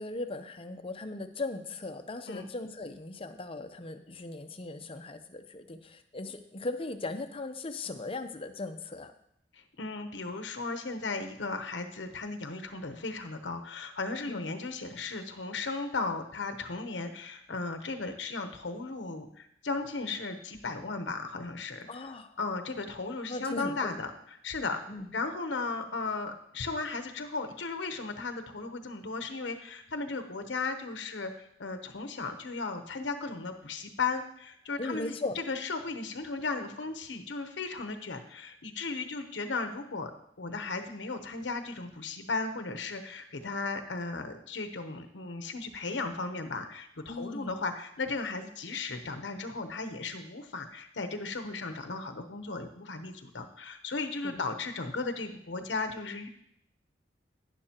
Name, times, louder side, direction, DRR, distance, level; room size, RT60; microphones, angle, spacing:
voice 1, 0.0-9.1 14.3-14.4 21.9-22.3 23.3-23.9 24.9-25.1 34.8-35.4 47.1-47.6 54.2-54.4, left 2 dB, 30° left, 8 dB, 0.7 m, -38 dB
voice 2, 9.8-21.9 22.4-24.1 24.4-24.8 25.1-35.1 35.5-40.1 40.4-56.3, left 3 dB, 85° left, 7 dB, 0.9 m, -36 dB
11.5 x 9.9 x 2.9 m, 0.73 s
head